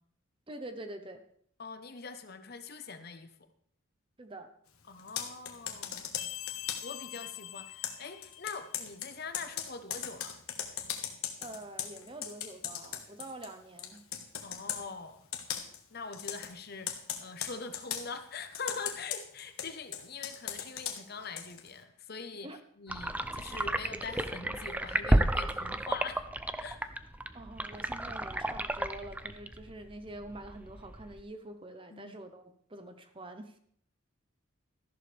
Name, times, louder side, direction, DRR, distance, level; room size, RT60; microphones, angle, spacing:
voice 1, 0.5-1.2 4.2-4.5 11.4-14.0 22.4-22.6 27.3-33.6, right 1 dB, 25° right, 8 dB, 0.9 m, -46 dB
voice 2, 1.6-3.4 4.9-6.2 6.8-10.4 14.4-15.3 15.9-27.0 31.9-32.2, left 4 dB, 45° left, 9 dB, 0.9 m, -43 dB
Computer keyboard, 5.0-7.0 7.8-13.5 13.8-14.8 15.3-15.8 16.1-16.5 16.9-18.1 18.5-21.7, left 9 dB, 85° left, 1.4 m, -38 dB
sound 1, 6.2-8.7, left 17 dB, 70° left, 0.4 m, -43 dB
sound 2, 22.9-31.2, right 1 dB, 5° right, 0.4 m, -32 dB
13.5 x 11.5 x 3.4 m, 0.64 s
head